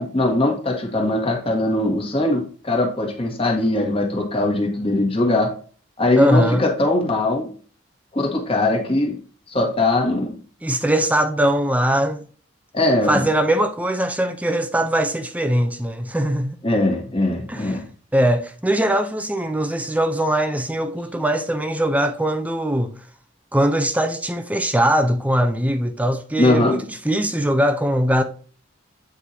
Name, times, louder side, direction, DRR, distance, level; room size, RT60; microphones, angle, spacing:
voice 1, 0.0-5.5 6.0-7.5 8.1-9.2 9.5-10.4 12.7-13.3 16.6-17.8 26.4-26.8, left 2 dB, 25° left, 1.4 m, -21 dB
voice 2, 6.2-6.6 10.6-12.2 13.1-16.6 17.5-17.8 18.1-22.9 23.5-28.2, right 1 dB, 5° right, 0.5 m, -21 dB
8.1 x 4.5 x 2.7 m
head